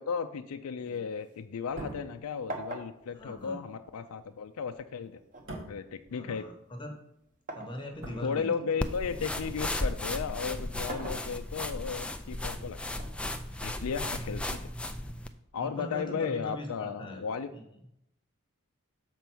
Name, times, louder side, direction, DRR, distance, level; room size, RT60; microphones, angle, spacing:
voice 1, 0.0-5.2 5.7-6.4 8.2-12.8 13.6-14.7 15.5-17.5, left 6 dB, 80° left, 8 dB, 0.4 m, -35 dB
sound 1, 0.9-2.1 2.5-4.4 5.3-7.8 8.4-9.6 10.6-11.8 12.9-14.0, right 1 dB, 35° right, 1.1 m, -44 dB
sound 2, 1.6-6.9 7.1-9.0 9.2-9.4, right 1 dB, 55° right, 2.3 m, -47 dB
voice 2, 3.1-3.6 6.1-7.0 7.5-8.5 8.7-9.3 10.8-11.3 15.6-17.3 17.5-17.6, left 1 dB, 20° left, 3 dB, 1.0 m, -41 dB
sound 3, 8.8-15.3, left 1 dB, 5° left, 0.3 m, -35 dB
6.8 x 4.4 x 6.1 m, 0.80 s
head